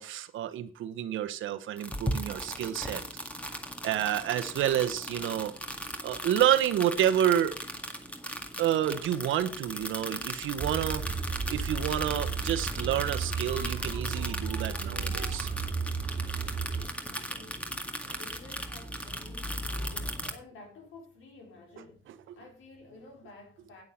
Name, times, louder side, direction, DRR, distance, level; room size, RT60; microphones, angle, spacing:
voice 1, 0.0-3.0 3.8-5.5 6.0-7.5 8.6-11.1 11.5-15.5, right 11 dB, 80° right, 1.1 m, -29 dB
sound 1, 1.8-20.3, equal, 5° left, 1.9 m, -38 dB
sound 2, 10.6-16.9, right 5 dB, 30° right, 2.2 m, -34 dB
voice 2, 17.1-23.8, left 2 dB, 85° left, 4.4 m, -52 dB
9.4 x 8.7 x 5.6 m
cardioid pair, 90°, 20 cm